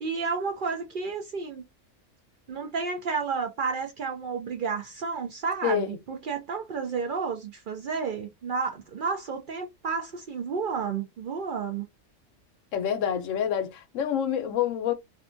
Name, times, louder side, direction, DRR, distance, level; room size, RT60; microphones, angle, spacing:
voice 1, 0.0-1.7 2.5-11.9, right 5 dB, 60° right, 0.6 m, -31 dB
voice 2, 5.6-6.0 12.7-14.9, left 9 dB, 90° left, 1.0 m, -27 dB
2.7 x 2.2 x 2.5 m
omnidirectional pair, 1.3 m